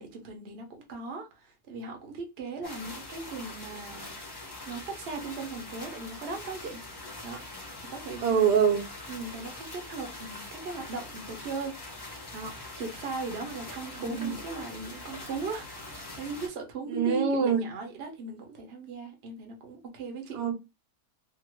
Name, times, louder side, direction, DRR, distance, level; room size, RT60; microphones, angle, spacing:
voice 1, 0.0-4.1 4.7-6.8 7.2-7.4 7.8-8.5 9.1-11.8 12.3-20.5, right 3 dB, 50° right, 0.8 m, -38 dB
sound 1, 2.6-16.5, left 2 dB, 30° left, 0.4 m, -43 dB
voice 2, 8.2-8.8 14.0-14.3 16.9-17.6 20.3-20.5, right 7 dB, 80° right, 1.2 m, -24 dB
2.8 x 2.5 x 3.0 m
omnidirectional pair, 1.8 m